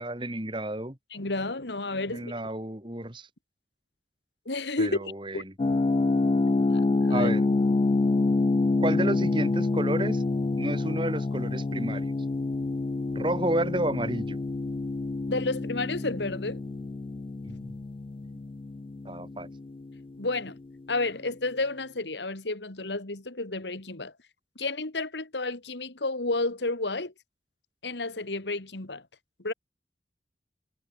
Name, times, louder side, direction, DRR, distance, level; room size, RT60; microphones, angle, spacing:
voice 1, 0.0-1.0 2.1-3.3 4.8-5.4 7.1-7.4 8.8-10.2 10.6-12.1 13.1-14.4 17.4-17.7 19.0-19.5, right 1 dB, 30° right, 2.8 m, -31 dB
voice 2, 1.1-2.3 4.5-5.0 5.3-5.5 6.7-7.3 15.3-16.6 20.2-20.5 20.9-24.1 24.6-27.1 27.8-29.0 29.4-29.5, left 2 dB, 80° left, 2.3 m, -31 dB
sound 1, 5.6-20.4, left 3 dB, 30° left, 0.3 m, -27 dB
head